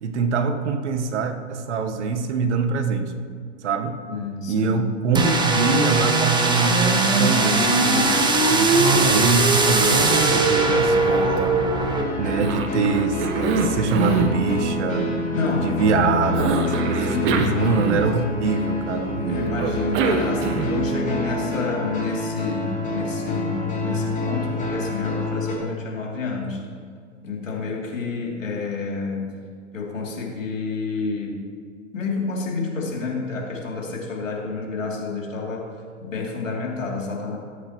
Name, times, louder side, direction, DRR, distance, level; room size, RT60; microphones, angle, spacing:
voice 1, 0.0-3.1 3.6-4.0 4.5-11.6 12.2-15.2 15.6-16.6 16.9-19.5, right 4 dB, 65° right, 7 dB, 1.3 m, -24 dB
voice 2, 4.1-4.8 15.3-15.8 17.0-17.4 19.3-26.6 27.2-29.3 29.7-31.4 31.9-35.7 36.0-37.4, left 4 dB, 85° left, -2 dB, 3.0 m, -29 dB
sound 1, 5.1-12.0, right 2 dB, 10° right, 1.1 m, -19 dB
Cough, 8.7-9.5 9.8-11.9 12.4-14.4 16.3-18.3 19.6-20.9, right 5 dB, 35° right, 1.1 m, -26 dB
sound 2, 11.9-25.6, left 2 dB, 20° left, 3.1 m, -27 dB
20.0 x 8.3 x 3.0 m, 2.1 s
hypercardioid pair, 110°, 38 cm